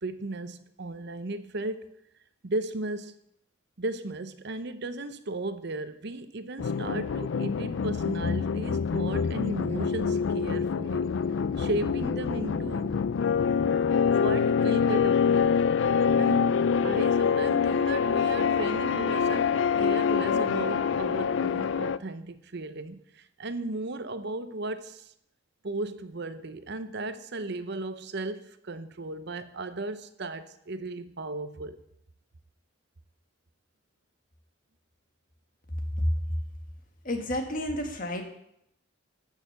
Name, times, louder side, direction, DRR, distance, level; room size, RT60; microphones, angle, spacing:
voice 1, 0.0-1.9 2.4-3.1 3.8-11.0 11.6-13.0 14.0-15.6 16.2-16.5 16.8-25.1 25.6-31.8, right 2 dB, 55° right, 0.8 m, -35 dB
sound 1, 6.6-22.0, left 6 dB, 65° left, 0.4 m, -25 dB
voice 2, 37.0-38.2, left 1 dB, 45° left, 1.8 m, -30 dB
14.0 x 6.5 x 6.8 m
head